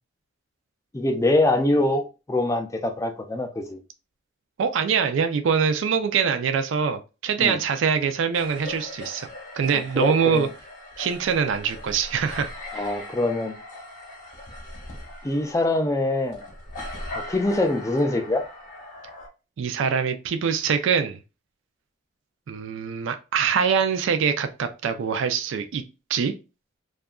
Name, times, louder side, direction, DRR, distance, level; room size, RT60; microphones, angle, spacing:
voice 1, 0.9-3.8 7.4-7.6 9.7-10.5 12.7-13.5 15.2-16.4 17.1-18.4, left 2 dB, 15° left, 0.3 m, -24 dB
voice 2, 4.6-9.3 9.5-10.5 11.0-12.9 19.6-21.2 22.5-25.8 26.1-26.3, right 6 dB, 65° right, 0.3 m, -24 dB
sound 1, 8.3-19.3, left 1 dB, 40° left, 0.7 m, -40 dB
2.7 x 2.3 x 2.3 m
head